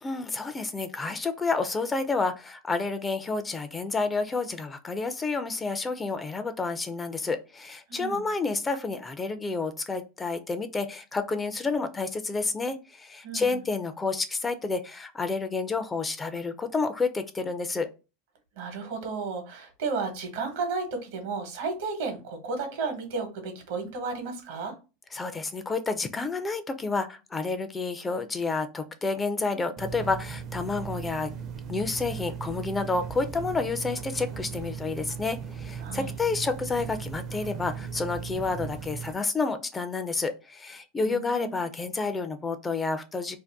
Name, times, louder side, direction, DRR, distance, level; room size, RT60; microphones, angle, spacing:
voice 1, 0.0-17.9 25.1-31.3 31.7-43.4, left 4 dB, 15° left, 9 dB, 0.4 m, -30 dB
voice 2, 7.9-8.2 13.2-13.6 18.6-24.8 35.8-36.1 41.0-41.6, right 4 dB, 75° right, 5 dB, 1.0 m, -33 dB
sound 1, 29.8-39.1, right 7 dB, 40° right, 0.5 m, -37 dB
2.6 x 2.2 x 3.4 m, 0.30 s
supercardioid pair, 115°, 0 cm